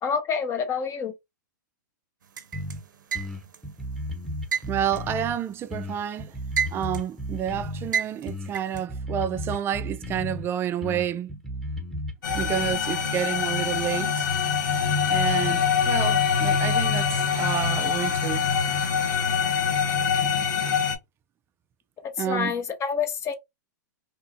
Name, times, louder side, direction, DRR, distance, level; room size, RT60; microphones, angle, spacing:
voice 1, 0.0-1.1 22.0-23.3, left 6 dB, 30° left, 0.7 m, -27 dB
sound 1, 2.4-3.7 4.5-5.9 6.2-7.2 7.9-8.8, right 7 dB, 85° right, 0.5 m, -30 dB
sound 2, 2.5-2.8 3.1-5.4 5.7-7.9 8.3-10.5 10.8-12.7, equal, ahead, 1.0 m, -34 dB
voice 2, 4.7-6.3 6.7-11.3 12.3-14.3 15.1-17.1 17.4-18.5 22.2-22.5, right 10 dB, 25° right, 0.3 m, -29 dB
sound 3, 12.2-21.0, left 6 dB, 80° left, 0.9 m, -24 dB
2.8 x 2.4 x 2.6 m
hypercardioid pair, 115°, 10 cm